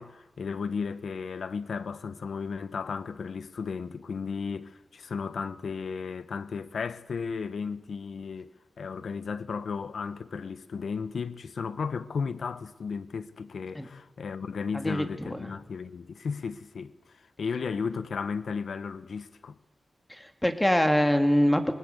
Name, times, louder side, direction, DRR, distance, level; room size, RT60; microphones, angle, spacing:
voice 1, 0.0-8.5 8.8-19.6, left 5 dB, 80° left, 1.1 m, -34 dB
voice 2, 14.7-15.5 20.1-21.7, equal, 10° left, 2.2 m, -24 dB
27.0 x 20.0 x 8.0 m
wide cardioid pair, 110°, 0 cm